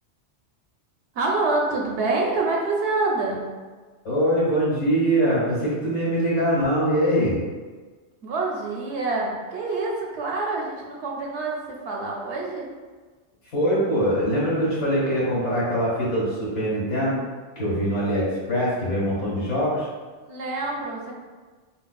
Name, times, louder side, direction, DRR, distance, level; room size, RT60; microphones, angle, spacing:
voice 1, 1.1-3.4 8.2-12.7 20.2-21.1, right 3 dB, 75° right, -1 dB, 1.0 m, -26 dB
voice 2, 4.0-7.4 13.4-17.2 17.6-19.9, equal, 85° left, -7 dB, 1.8 m, -23 dB
5.0 x 2.3 x 2.3 m, 1.4 s
omnidirectional pair, 1.2 m